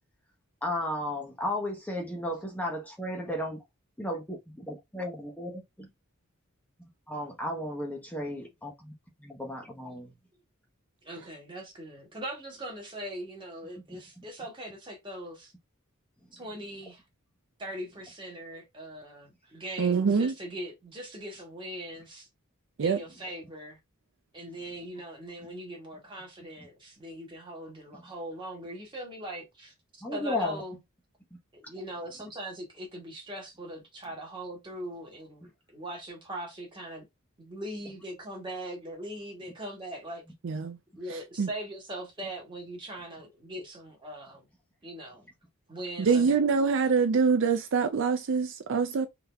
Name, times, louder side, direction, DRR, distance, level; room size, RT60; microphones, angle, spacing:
voice 1, 0.6-3.6 4.0-4.4 4.7-5.9 6.8-8.9 9.2-10.1 13.9-14.0 30.0-30.6, left 1 dB, 5° left, 0.8 m, -34 dB
voice 2, 11.0-15.5 16.3-17.0 17.6-22.3 22.8-23.8 24.3-29.7 30.1-30.8 31.5-37.1 37.4-40.2 40.9-44.5 44.8-45.3 45.7-46.4 46.8-46.9, right 1 dB, 20° right, 1.6 m, -40 dB
voice 3, 19.8-20.3 22.8-23.0 40.4-40.8 41.4-41.5 46.0-49.1, right 5 dB, 60° right, 0.4 m, -24 dB
3.8 x 2.8 x 3.4 m
head